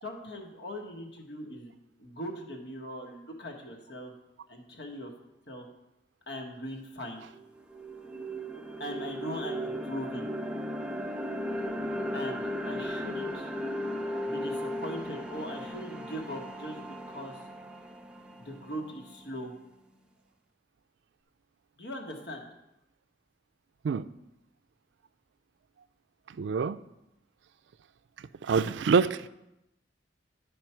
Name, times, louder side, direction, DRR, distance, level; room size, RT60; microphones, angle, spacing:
voice 1, 0.0-1.7 2.0-4.1 4.5-5.1 5.5-5.6 6.3-7.2 8.8-10.3 12.1-13.5 14.3-17.4 18.4-19.5 21.8-22.5, equal, 65° left, 1 dB, 1.5 m, -40 dB
sound 1, 6.8-6.9 7.3-19.4, equal, 5° right, 0.6 m, -36 dB
voice 2, 26.4-26.8 28.4-29.3, right 5 dB, 80° right, 14 dB, 0.4 m, -25 dB
10.5 x 5.3 x 4.4 m, 0.88 s
head